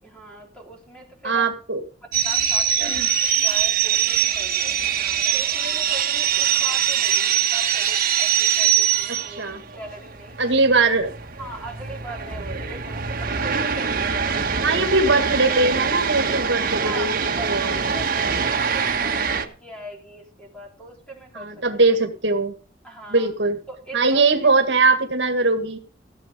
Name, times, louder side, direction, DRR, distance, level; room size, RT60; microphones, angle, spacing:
voice 1, 0.0-1.5 2.2-4.8 5.3-10.4 11.4-14.6 16.8-21.5 21.8-22.0 22.8-23.3 23.7-24.5, right 1 dB, 5° left, 0 dB, 3.9 m, -40 dB
voice 2, 1.2-1.8 2.8-3.1 9.1-9.6 10.4-11.1 14.6-17.1 17.4-17.7 21.4-22.5 23.1-23.6 23.9-25.8, right 3 dB, 70° right, 6 dB, 2.0 m, -20 dB
sound 1, 2.1-19.4, right 8 dB, 50° right, 1.5 m, -23 dB
15.5 x 7.7 x 5.2 m, 0.38 s
head